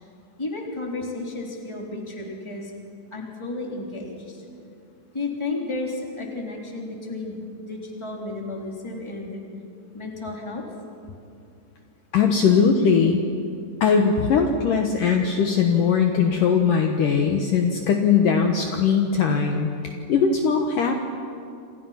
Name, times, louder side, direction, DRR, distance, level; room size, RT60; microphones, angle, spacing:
voice 1, 0.4-2.7 3.1-4.4 5.1-9.4 9.9-10.7, left 2 dB, 5° left, -1 dB, 2.4 m, -32 dB
voice 2, 12.1-13.2 13.8-20.9, left 6 dB, 80° left, 3 dB, 1.9 m, -20 dB
29.0 x 27.5 x 5.8 m, 2.5 s
omnidirectional pair, 5.9 m